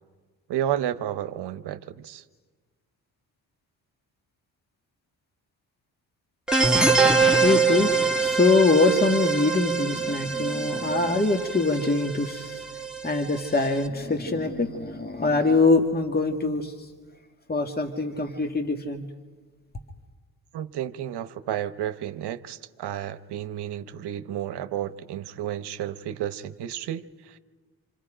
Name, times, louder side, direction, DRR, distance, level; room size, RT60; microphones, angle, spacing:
voice 1, 0.5-2.2 20.5-27.4, right 11 dB, 75° right, 11 dB, 1.0 m, -32 dB
sound 1, 6.5-13.8, right 4 dB, ahead, 1.9 m, -24 dB
voice 2, 7.0-12.6 13.0-16.9 17.5-19.1, left 3 dB, 25° left, 4 dB, 1.9 m, -24 dB
27.5 x 26.0 x 5.0 m, 1.4 s
supercardioid pair, 60°, 41 cm